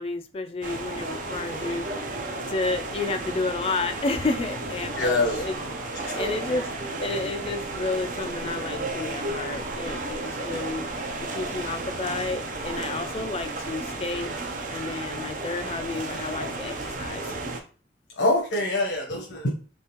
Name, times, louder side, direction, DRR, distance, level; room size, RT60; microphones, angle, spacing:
voice 1, 0.0-1.9 2.5-5.6 6.2-6.7 7.0-10.9 11.2-14.3 14.7-17.4, left 3 dB, 30° left, 9 dB, 0.3 m, -31 dB
sound 1, 0.6-17.6, right 2 dB, 45° right, 0.5 m, -33 dB
voice 2, 5.0-5.4 6.0-6.3 18.2-19.5, left 2 dB, 80° left, -1 dB, 0.9 m, -25 dB
3.5 x 3.3 x 2.9 m, 0.38 s
head